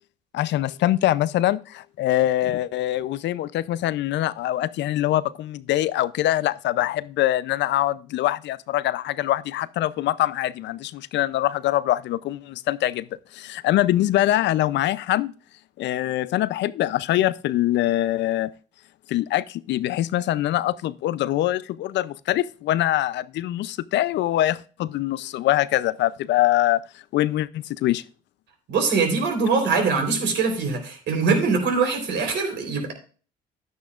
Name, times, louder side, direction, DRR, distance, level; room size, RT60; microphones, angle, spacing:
voice 1, 0.3-13.1 13.3-15.3 15.8-18.5 19.1-26.8 27.1-28.0, left 14 dB, 70° left, 0.5 m, -23 dB
voice 2, 28.7-32.9, right 4 dB, 70° right, 3.8 m, -22 dB
11.0 x 9.3 x 2.4 m
supercardioid pair, 65°, 19 cm